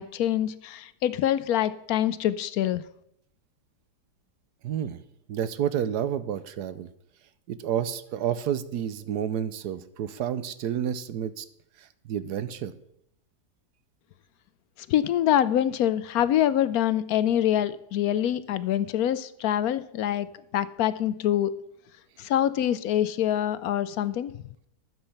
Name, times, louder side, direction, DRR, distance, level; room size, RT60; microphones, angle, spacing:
voice 1, 0.0-2.8 14.9-20.3 20.5-21.5 22.2-24.3, left 11 dB, 70° left, 15 dB, 1.0 m, -25 dB
voice 2, 4.6-5.0 5.3-6.9 7.5-11.4 11.8-12.7, right 9 dB, 80° right, 14 dB, 1.3 m, -30 dB
12.0 x 7.8 x 5.7 m, 0.75 s
omnidirectional pair, 1.7 m